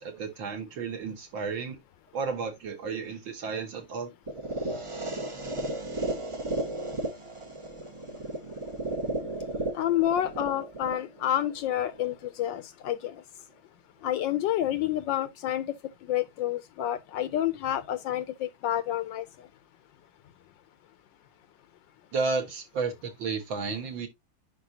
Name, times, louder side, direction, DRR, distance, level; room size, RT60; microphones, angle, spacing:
voice 1, 0.0-1.8 2.1-4.1 22.1-24.1, right 4 dB, 65° right, 2.3 m, -32 dB
sound 1, 4.3-12.3, right 2 dB, 30° right, 0.5 m, -34 dB
voice 2, 9.7-13.2 14.0-15.7 16.1-19.2, left 12 dB, 75° left, 1.2 m, -29 dB
10.0 x 4.8 x 2.7 m
omnidirectional pair, 2.3 m